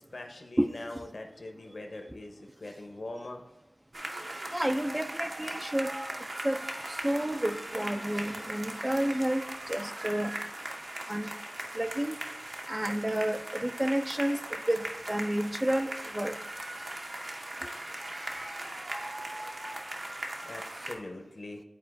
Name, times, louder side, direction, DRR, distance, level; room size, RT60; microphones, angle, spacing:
voice 1, 0.0-3.4 18.7-18.8 20.4-21.6, left 2 dB, 60° left, 3 dB, 0.8 m, -42 dB
sound 1, 3.9-21.0, right 1 dB, 50° right, 0.7 m, -39 dB
voice 2, 4.5-5.9 6.4-6.6 6.9-10.3 11.1-11.3 11.7-12.2 12.7-16.4, right 1 dB, 15° right, 8 dB, 0.3 m, -30 dB
11.0 x 4.2 x 2.5 m, 0.93 s
wide cardioid pair, 75°, 0 cm